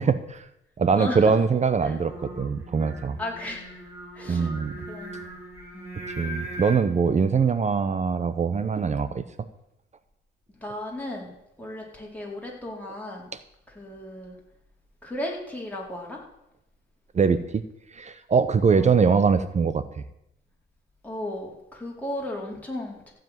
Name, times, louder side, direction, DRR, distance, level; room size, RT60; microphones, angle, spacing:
voice 1, 0.1-0.5 0.8-3.2 4.3-4.7 6.2-9.2 17.1-17.6 17.9-19.8, right 5 dB, 35° right, 13 dB, 0.8 m, -22 dB
voice 2, 1.0-1.4 1.8-1.9 3.2-3.7 4.1-5.3 5.7-6.2 10.6-13.3 13.7-14.4 15.0-16.2 18.7-18.9 21.0-23.1, left 1 dB, 5° left, -2 dB, 4.4 m, -35 dB
Singing, 1.7-6.8, equal, 10° right, 5.6 m, -40 dB
15.0 x 5.1 x 9.3 m, 0.84 s
cardioid pair, 90°, 20 cm